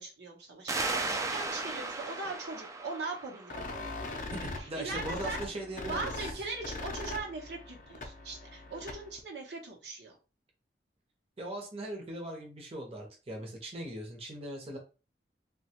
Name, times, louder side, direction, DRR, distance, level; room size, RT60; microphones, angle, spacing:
voice 1, 0.0-3.7 4.6-5.4 5.9-10.2, right 3 dB, 70° right, 0 dB, 0.8 m, -40 dB
sound 1, 0.7-4.0, right 3 dB, 20° right, 0.3 m, -36 dB
sound 2, 3.5-9.2, left 2 dB, 45° left, 0.5 m, -41 dB
voice 2, 4.3-6.3 11.4-14.8, right 1 dB, 35° right, 1 dB, 0.7 m, -40 dB
2.9 x 2.2 x 2.9 m, 0.33 s
head